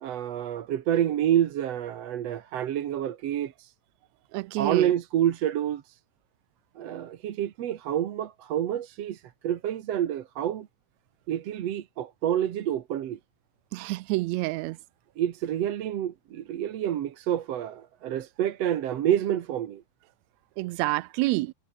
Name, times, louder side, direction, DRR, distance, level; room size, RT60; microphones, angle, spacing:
voice 1, 0.0-3.7 4.6-6.0 6.8-10.7 11.3-13.2 15.2-19.8, right 11 dB, 60° right, 2.2 m, -28 dB
voice 2, 4.3-4.9 13.7-14.8 20.6-21.5, right 20 dB, 80° right, 1.7 m, -28 dB
omnidirectional pair, 3.5 m